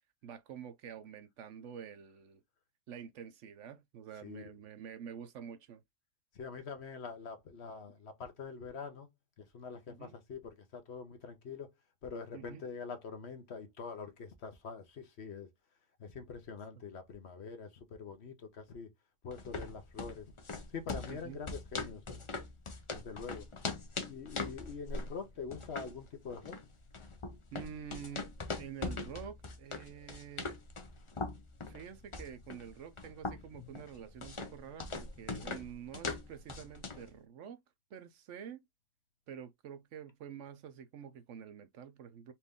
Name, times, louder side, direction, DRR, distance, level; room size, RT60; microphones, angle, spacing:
voice 1, 0.2-2.4 2.9-5.8 9.9-10.2 12.3-12.6 21.1-21.4 27.5-28.3 28.6-30.5 31.7-37.6 37.9-38.6 39.3-42.3, right 8 dB, 70° right, 0.9 m, -48 dB
voice 2, 6.3-9.1 9.4-11.7 12.0-15.5 16.0-18.9 19.2-20.3 20.7-22.0 22.9-23.5 24.1-26.6, left 5 dB, 55° left, 1.0 m, -44 dB
sound 1, 19.3-37.1, left 3 dB, 35° left, 0.5 m, -42 dB
4.3 x 2.6 x 3.5 m
omnidirectional pair, 1.4 m